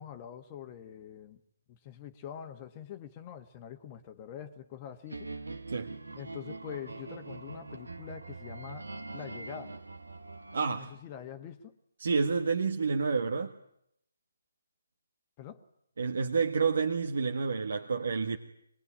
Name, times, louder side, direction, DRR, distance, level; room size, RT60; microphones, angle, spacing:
voice 1, 0.0-1.4 1.7-5.6 6.1-8.9 9.1-9.8 10.8-11.7 15.4-15.6, left 9 dB, 25° left, 7 dB, 1.4 m, -45 dB
sound 1, 5.1-10.6, right 3 dB, 85° right, 1.7 m, -43 dB
voice 2, 10.5-10.9 12.0-13.5 16.0-18.4, right 5 dB, 65° right, 4 dB, 1.7 m, -29 dB
24.0 x 21.0 x 9.9 m, 0.75 s
figure-of-eight pair, 150°, 0 cm